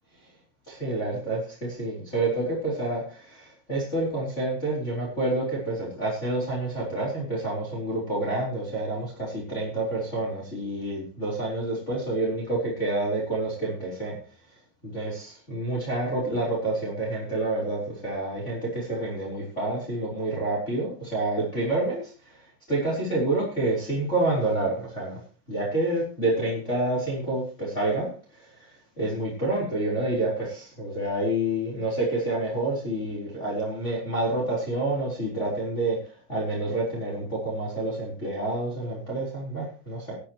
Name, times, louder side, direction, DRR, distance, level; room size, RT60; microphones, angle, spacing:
voice 1, 0.7-14.2 14.8-25.2 25.5-28.7 29.0-40.2, right 2 dB, 15° left, -4 dB, 4.0 m, -28 dB
25.0 x 8.3 x 3.1 m, 0.35 s
omnidirectional pair, 5.9 m